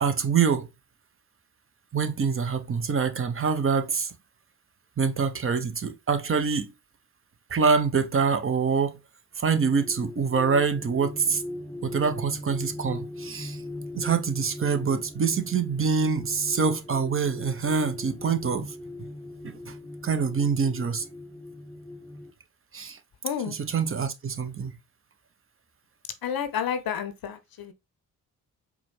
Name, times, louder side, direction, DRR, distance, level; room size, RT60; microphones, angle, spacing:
voice 1, 0.0-0.7 1.9-4.1 5.0-6.7 7.5-9.0 9.4-11.4 11.8-13.6 13.9-18.7 19.4-19.8 20.0-21.0 22.7-23.0 23.5-24.7, right 5 dB, 30° right, 0.8 m, -25 dB
sound 1, 9.5-22.3, left 2 dB, 5° left, 0.9 m, -40 dB
voice 2, 23.2-23.6 26.2-27.7, left 8 dB, 50° left, 0.7 m, -30 dB
4.8 x 2.3 x 3.2 m
hypercardioid pair, 40°, 45 cm